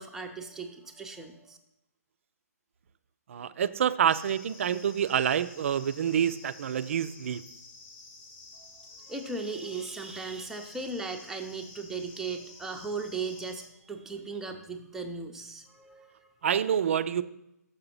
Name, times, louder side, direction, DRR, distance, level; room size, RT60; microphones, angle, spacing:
voice 1, 0.0-1.6 8.6-16.3, right 4 dB, 5° right, 3 dB, 0.6 m, -37 dB
voice 2, 3.3-7.4 16.4-17.2, right 8 dB, 50° right, 14 dB, 0.4 m, -27 dB
sound 1, 4.1-13.7, left 3 dB, 25° left, 0.9 m, -51 dB
6.6 x 5.7 x 5.5 m, 0.86 s
figure-of-eight pair, 135°, 9 cm